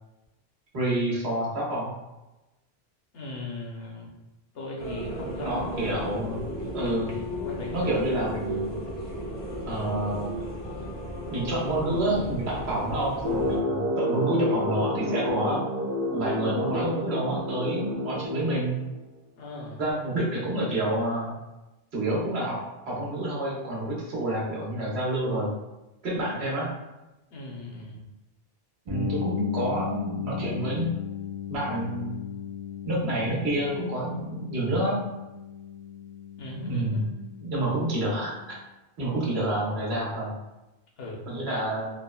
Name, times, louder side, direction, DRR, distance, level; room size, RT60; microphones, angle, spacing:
voice 1, 0.7-1.9 5.4-6.4 6.7-7.2 7.7-8.7 9.6-10.4 11.3-15.6 16.1-18.8 19.8-21.3 21.9-22.6 22.9-25.5 26.0-26.7 28.9-30.9 31.5-32.1 32.8-35.0 36.7-37.0 37.4-38.6 39.0-40.3 41.3-41.9, right 1 dB, 85° right, -5 dB, 1.2 m, -28 dB
voice 2, 3.1-4.1 4.5-6.2 7.4-8.0 19.4-19.8 27.3-28.1 36.4-37.2 41.0-41.3, left 2 dB, 75° left, -2 dB, 0.9 m, -38 dB
sound 1, 4.8-13.6, equal, 35° left, 0.5 m, -34 dB
sound 2, 13.2-19.0, left 1 dB, 65° right, 0.8 m, -29 dB
sound 3, 28.9-38.6, left 8 dB, 45° right, 0.3 m, -37 dB
3.5 x 2.0 x 2.2 m, 1.0 s
omnidirectional pair, 1.0 m